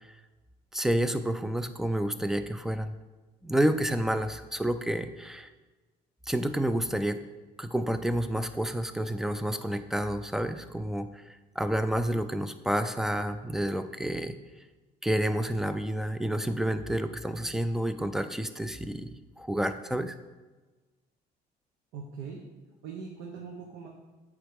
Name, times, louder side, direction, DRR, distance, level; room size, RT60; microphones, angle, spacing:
voice 1, 0.7-2.9 3.4-5.5 6.3-7.2 7.6-11.2 11.6-14.4 15.0-20.1, right 1 dB, ahead, 10 dB, 0.4 m, -29 dB
voice 2, 21.9-22.5 22.8-23.9, right 5 dB, 85° right, 0 dB, 1.0 m, -41 dB
8.0 x 3.6 x 5.2 m, 1.2 s
cardioid pair, 110°, 17 cm